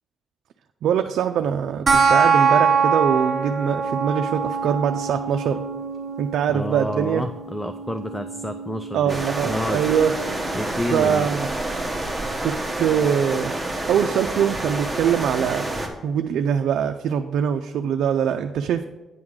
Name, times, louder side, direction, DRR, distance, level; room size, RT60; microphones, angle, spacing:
voice 1, 0.8-5.6 6.2-7.3 8.9-10.1 10.9-11.5 12.4-13.5 13.9-15.7 16.0-18.8, right 8 dB, 80° right, 6 dB, 0.3 m, -23 dB
sound 1, 1.9-12.8, right 5 dB, 35° right, 0.9 m, -25 dB
voice 2, 6.5-9.8 10.5-11.3, left 1 dB, 10° left, 8 dB, 0.4 m, -29 dB
sound 2, 9.1-15.9, right 2 dB, 10° right, 1.3 m, -28 dB
9.4 x 3.7 x 6.2 m, 1.1 s
cardioid pair, 110°, 0 cm